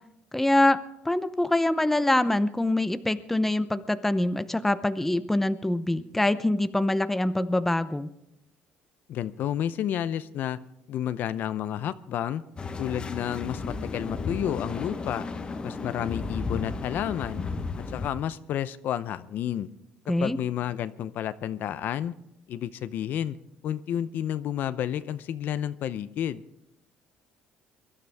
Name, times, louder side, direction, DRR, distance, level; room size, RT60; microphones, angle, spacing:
voice 1, 0.3-8.1 20.1-20.4, left 1 dB, 5° left, 11 dB, 0.7 m, -24 dB
voice 2, 9.1-10.6 10.9-12.4 12.8-15.2 15.6-17.4 17.8-19.7 20.2-22.1 22.5-23.4 23.6-26.4, left 10 dB, 60° left, 14 dB, 0.6 m, -31 dB
sound 1, 12.6-18.1, left 4 dB, 25° left, 1.1 m, -34 dB
23.0 x 12.5 x 3.5 m, 0.83 s
cardioid pair, 130°, 4 cm